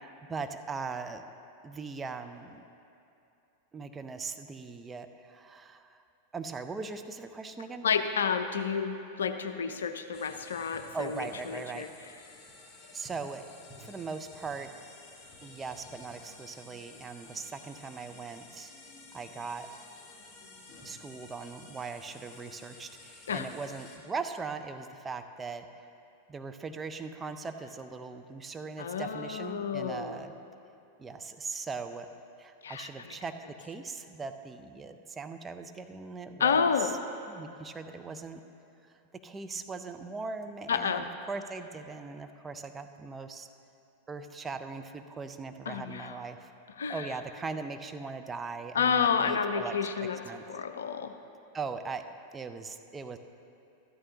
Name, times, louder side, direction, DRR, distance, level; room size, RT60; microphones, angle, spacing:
voice 1, 0.0-1.2 1.6-2.6 3.7-6.0 6.3-7.9 10.7-11.9 12.9-13.5 13.8-14.7 15.4-18.7 19.1-19.7 20.8-25.7 26.3-30.3 31.0-32.1 32.4-36.9 37.3-38.4 39.2-43.5 44.1-46.5 46.9-49.8 50.2-50.4 51.5-52.1 52.3-53.2, right 4 dB, 15° right, 7 dB, 0.5 m, -40 dB
voice 2, 7.8-11.9 23.3-23.5 28.8-30.2 32.6-33.2 36.4-36.9 40.7-41.1 45.7-46.2 46.8-47.1 48.7-50.2 50.5-51.1, left 6 dB, 65° left, 8 dB, 0.5 m, -30 dB
sound 1, 10.1-24.0, left 3 dB, 25° left, 1.7 m, -52 dB
13.5 x 12.0 x 2.8 m, 2.6 s
figure-of-eight pair, 90°, 0 cm